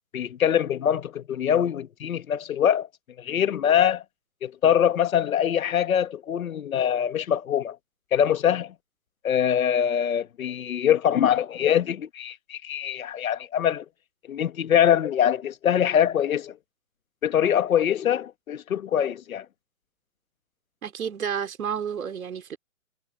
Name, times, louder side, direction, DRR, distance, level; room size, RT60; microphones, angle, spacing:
voice 1, 0.1-2.9 3.2-4.0 4.4-7.8 8.1-8.7 9.2-13.8 14.3-16.6 17.2-19.4, left 9 dB, 80° left, 1.5 m, -23 dB
voice 2, 20.8-22.6, right 8 dB, 80° right, 3.8 m, -31 dB
hypercardioid pair, 160°, 41 cm